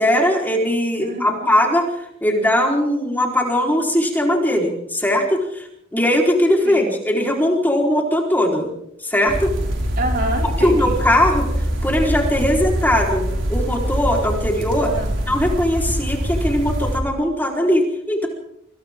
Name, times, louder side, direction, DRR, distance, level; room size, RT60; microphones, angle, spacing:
voice 1, 0.0-5.7 5.9-8.7 9.0-9.5 10.6-11.5 11.8-14.9 15.3-18.3, left 1 dB, 10° left, 0 dB, 4.2 m, -19 dB
voice 2, 1.0-1.5 6.6-7.0 10.0-11.1 14.8-15.2, right 2 dB, 50° right, 0 dB, 5.3 m, -28 dB
sound 1, 9.3-17.0, equal, 85° right, 5.7 m, -24 dB
27.5 x 26.5 x 3.7 m, 0.75 s
head